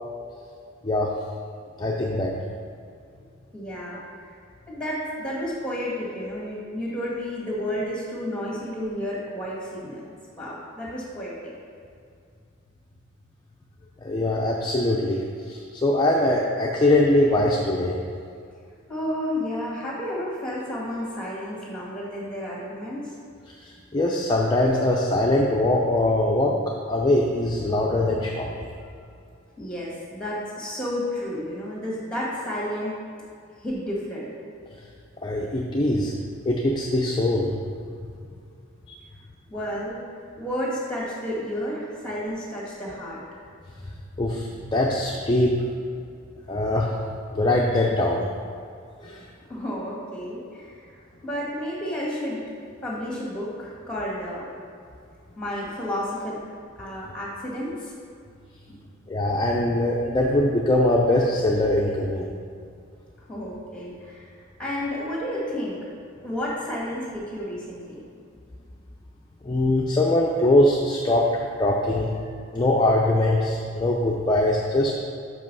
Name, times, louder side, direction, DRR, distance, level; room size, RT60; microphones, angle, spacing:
voice 1, 1.8-2.3 14.0-18.0 23.6-28.7 35.2-36.1 36.5-37.5 38.9-39.0 44.2-45.6 46.5-46.9 47.3-48.3 49.0-49.2 59.1-62.3 69.4-72.1 72.5-74.9, left 1 dB, 20° left, -2 dB, 0.5 m, -22 dB
voice 2, 3.5-4.4 4.7-10.0 10.4-11.5 18.9-23.1 28.8-28.9 29.6-33.0 33.6-34.3 39.5-40.0 40.4-43.2 49.5-52.4 52.8-54.5 55.4-56.4 56.8-57.9 58.7-58.8 63.3-64.3 64.6-65.8 66.2-68.0, equal, 5° left, -5 dB, 1.8 m, -31 dB
6.2 x 5.5 x 5.4 m, 2.3 s
head